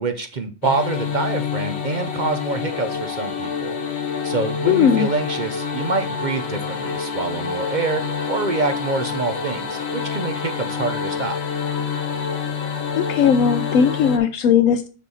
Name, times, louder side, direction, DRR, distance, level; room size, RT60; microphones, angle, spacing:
voice 1, 0.0-3.8 4.2-8.0 8.3-11.3, right 3 dB, 45° right, 8 dB, 0.6 m, -26 dB
sound 1, 0.6-14.2, left 6 dB, 55° left, 1.1 m, -27 dB
voice 2, 4.7-5.1 12.9-14.9, left 7 dB, 75° left, 9 dB, 1.0 m, -17 dB
7.3 x 5.4 x 4.1 m, 0.34 s
omnidirectional pair, 1.4 m